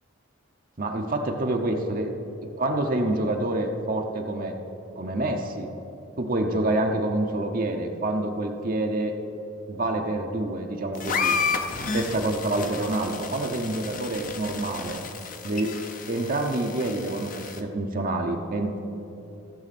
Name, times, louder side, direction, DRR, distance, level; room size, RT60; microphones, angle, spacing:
voice 1, 0.8-2.1 2.6-4.5 5.0-5.7 6.2-9.2 9.7-11.4 11.9-15.0 15.4-15.8 16.1-18.8, right 2 dB, 40° right, 3 dB, 0.7 m, -27 dB
sound 1, 10.9-17.6, left 5 dB, 40° left, 0.7 m, -32 dB
16.0 x 7.0 x 4.2 m, 2.9 s
head